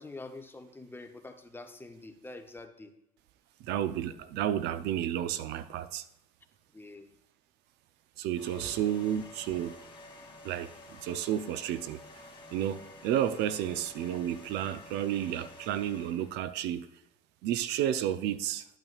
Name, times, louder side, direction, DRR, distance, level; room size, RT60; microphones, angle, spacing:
voice 1, 0.0-2.9 6.7-7.1 8.6-8.8, left 2 dB, 15° left, 6 dB, 0.8 m, -46 dB
voice 2, 3.6-6.1 8.2-9.8 10.4-12.0 12.5-16.9 17.4-18.7, right 10 dB, 85° right, 13 dB, 0.5 m, -31 dB
sound 1, 8.3-16.5, left 1 dB, 30° left, 2.3 m, -51 dB
10.5 x 8.9 x 2.4 m, 0.81 s
cardioid pair, 110°, 17 cm